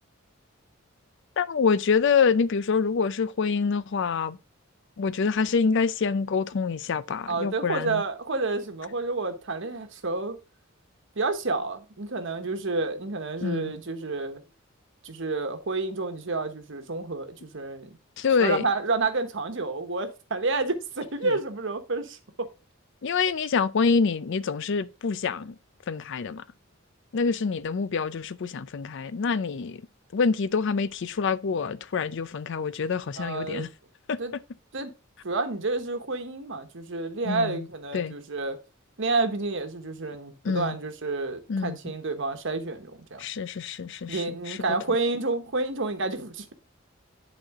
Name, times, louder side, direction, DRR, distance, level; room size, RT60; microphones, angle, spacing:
voice 1, 1.4-4.4 5.0-8.0 13.4-13.7 18.2-18.7 21.2-21.3 23.0-25.5 25.9-26.4 27.1-29.8 30.1-33.7 34.1-34.2 37.2-37.6 37.9-38.1 40.4-40.8 41.5-41.8 43.2-44.6, left 5 dB, 60° left, 0.5 m, -26 dB
voice 2, 7.3-10.4 11.2-14.4 15.0-17.9 18.4-22.5 33.2-33.7 34.2-34.3 34.7-34.9 35.2-38.6 39.0-43.2 44.1-46.5, right 3 dB, 65° right, 1.1 m, -29 dB
11.0 x 4.2 x 3.6 m
head